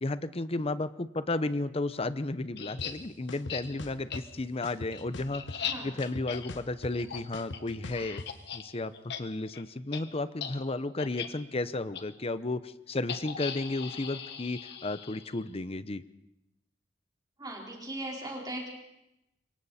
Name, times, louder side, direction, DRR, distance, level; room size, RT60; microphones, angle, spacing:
voice 1, 0.0-8.2 8.5-16.0, left 2 dB, 35° left, 13 dB, 0.8 m, -33 dB
sound 1, 2.6-2.9 3.5-3.6 4.1-4.2 4.6-8.6 8.9-9.2 9.5-9.6 9.9-10.0 10.4-10.5 11.0-11.3 11.9-12.0 13.1-15.4, left 8 dB, 65° left, 1.5 m, -39 dB
sound 2, 2.8-2.9 3.3-4.2 4.6-5.7 6.0-8.3, left 2 dB, 85° left, 1.2 m, -41 dB
voice 2, 5.6-5.9 17.4-18.7, right 1 dB, 20° right, -2 dB, 4.5 m, -38 dB
26.5 x 23.0 x 4.3 m, 0.88 s
head